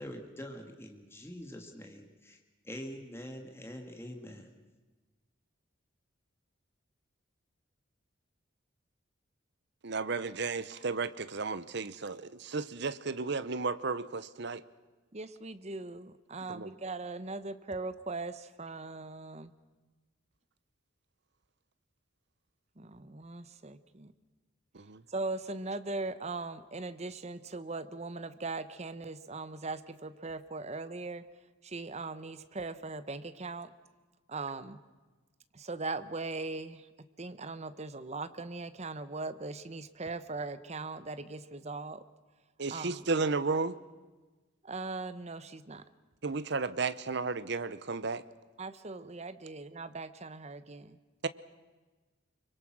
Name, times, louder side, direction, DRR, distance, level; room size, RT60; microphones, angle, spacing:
voice 1, 0.0-2.4 2.6-4.5, equal, 15° left, 3 dB, 2.1 m, -44 dB
voice 2, 9.8-12.1 12.4-14.6 16.5-16.7 24.7-25.0 42.6-43.7 46.2-48.2 51.2-51.3, right 4 dB, 60° right, 15 dB, 0.9 m, -33 dB
voice 3, 15.1-19.5 22.8-24.1 25.1-31.2 31.6-33.7 34.3-34.8 35.5-36.9 37.2-42.0 42.7-43.0 44.6-45.8 48.6-51.0, right 3 dB, 35° right, 12 dB, 1.0 m, -39 dB
25.5 x 24.0 x 6.2 m, 1.3 s
head